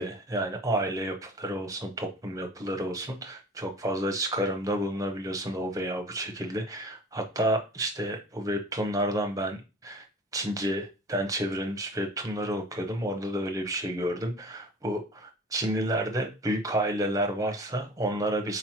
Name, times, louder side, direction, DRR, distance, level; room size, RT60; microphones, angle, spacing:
voice 1, 0.0-10.0 10.3-18.6, right 1 dB, 20° right, 3 dB, 0.6 m, -30 dB
4.1 x 2.9 x 2.8 m, 0.28 s
head